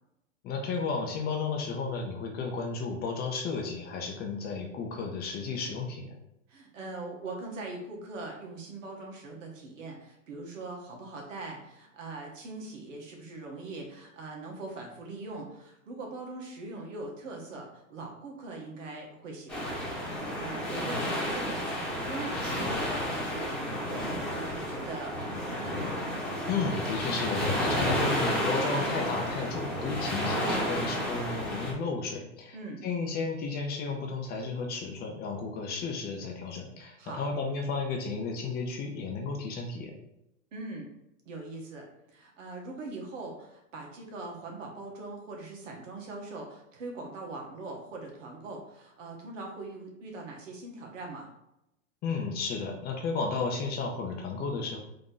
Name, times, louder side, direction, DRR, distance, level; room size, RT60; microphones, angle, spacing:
voice 1, 0.4-6.2 26.5-32.6 32.8-40.0 52.0-54.8, left 4 dB, 25° left, 2 dB, 0.6 m, -33 dB
voice 2, 6.5-25.8 32.5-32.8 37.0-37.2 40.5-40.9 41.2-51.3, right 2 dB, 75° right, 0 dB, 1.5 m, -41 dB
sound 1, 19.5-31.7, equal, ahead, 1.1 m, -31 dB
3.8 x 2.9 x 3.8 m, 0.83 s
hypercardioid pair, 125°, 38 cm